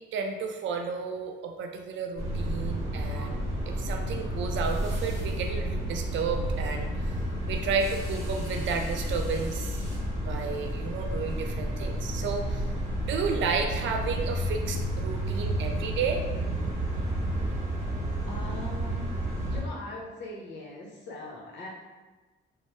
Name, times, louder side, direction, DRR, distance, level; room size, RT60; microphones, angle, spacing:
voice 1, 0.0-3.4 3.7-7.1 7.5-9.8 10.3-12.6 13.0-16.2, right 5 dB, 70° right, 4 dB, 0.4 m, -32 dB
sound 1, 2.2-19.6, right 1 dB, 15° right, 1.0 m, -31 dB
voice 2, 18.3-19.1 19.4-21.7, left 1 dB, 65° left, -2 dB, 0.8 m, -41 dB
3.1 x 2.0 x 2.9 m, 1.2 s
cardioid pair, 90°, 20 cm